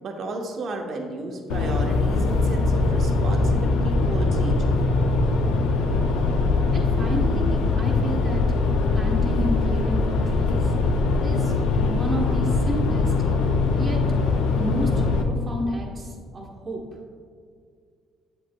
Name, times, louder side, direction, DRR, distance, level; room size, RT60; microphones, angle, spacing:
voice 1, 0.0-4.7, right 2 dB, 60° right, 2 dB, 0.9 m, -33 dB
sound 1, 1.5-15.2, left 3 dB, 85° left, 0.6 m, -22 dB
voice 2, 6.7-8.4 8.9-10.7 11.2-13.1 13.7-14.0 14.5-16.8, equal, 40° right, -3 dB, 1.1 m, -31 dB
7.9 x 7.6 x 2.2 m, 2.1 s
supercardioid pair, 75°, 0 cm